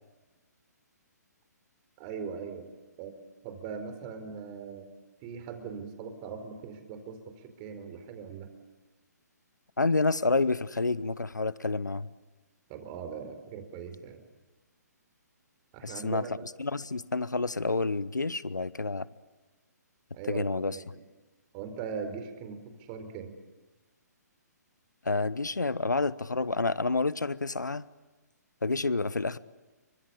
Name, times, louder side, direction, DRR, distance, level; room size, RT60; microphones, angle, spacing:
voice 1, 2.0-2.7 3.0-3.1 3.4-4.9 5.2-8.5 12.7-14.2 15.7-16.3 20.1-21.0 21.5-23.3, right 6 dB, 30° right, 8 dB, 4.3 m, -40 dB
voice 2, 9.8-12.1 15.8-16.3 16.6-19.1 20.3-20.8 25.0-27.8 28.6-29.4, left 3 dB, 85° left, 19 dB, 1.0 m, -29 dB
28.0 x 25.0 x 8.6 m, 1.2 s
figure-of-eight pair, 130°, 10 cm